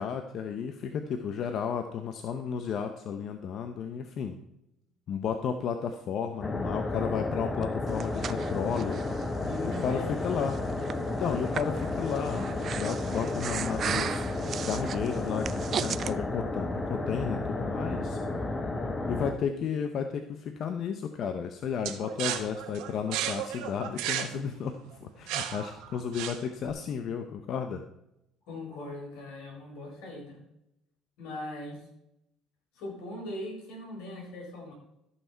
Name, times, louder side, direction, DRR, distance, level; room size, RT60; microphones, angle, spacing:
voice 1, 0.0-4.4 5.1-9.0 9.6-10.6 11.2-14.2 14.6-15.5 15.8-18.2 19.1-27.8, left 7 dB, 50° left, 7 dB, 0.7 m, -33 dB
sound 1, 6.4-19.3, left 2 dB, 20° left, 1.0 m, -32 dB
Breathing, 7.6-16.1, right 8 dB, 40° right, 0.4 m, -37 dB
voice 2, 9.4-10.3 28.5-30.4 31.2-31.9 32.7-34.7, left 1 dB, 85° left, -1 dB, 4.5 m, -40 dB
sound 2, 21.8-26.7, right 10 dB, 80° right, 1.2 m, -34 dB
14.0 x 5.8 x 4.5 m, 0.84 s
cardioid pair, 120°, 0 cm